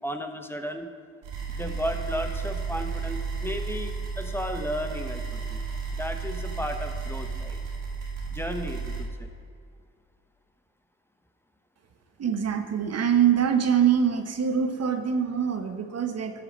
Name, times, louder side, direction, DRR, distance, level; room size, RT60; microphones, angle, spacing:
voice 1, 0.0-0.9 1.5-5.6 5.9-7.6 8.3-9.3, equal, 10° left, 6 dB, 1.1 m, -34 dB
sound 1, 1.2-9.0, right 5 dB, 90° right, 2.2 m, -33 dB
voice 2, 12.2-16.3, right 8 dB, 60° right, 7 dB, 1.1 m, -24 dB
12.5 x 4.9 x 6.3 m, 2.2 s
supercardioid pair, 60°, 29 cm